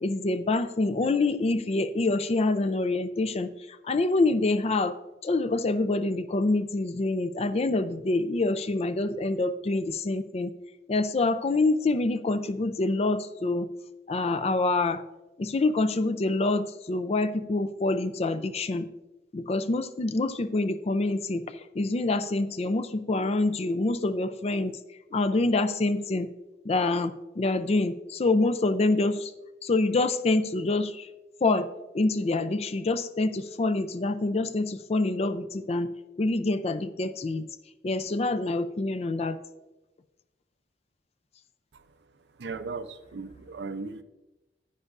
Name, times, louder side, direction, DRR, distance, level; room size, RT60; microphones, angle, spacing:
voice 1, 0.0-5.0 5.2-10.5 10.9-13.7 14.1-15.0 15.4-18.9 19.3-24.8 25.1-26.3 26.6-29.3 29.6-31.1 31.4-37.5 37.8-39.4, left 2 dB, 35° left, 12 dB, 0.4 m, -26 dB
voice 2, 42.4-44.0, right 4 dB, 70° right, 11 dB, 0.5 m, -37 dB
9.8 x 9.7 x 2.5 m, 1.0 s
head